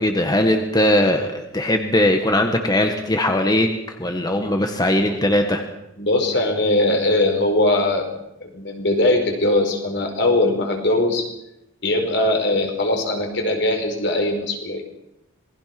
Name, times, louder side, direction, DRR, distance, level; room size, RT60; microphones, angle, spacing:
voice 1, 0.0-5.6, left 1 dB, 20° left, 4 dB, 1.7 m, -20 dB
voice 2, 6.0-8.1 8.4-11.3 11.8-14.8, left 2 dB, 60° left, 4 dB, 5.0 m, -20 dB
27.0 x 21.0 x 6.1 m, 0.87 s
head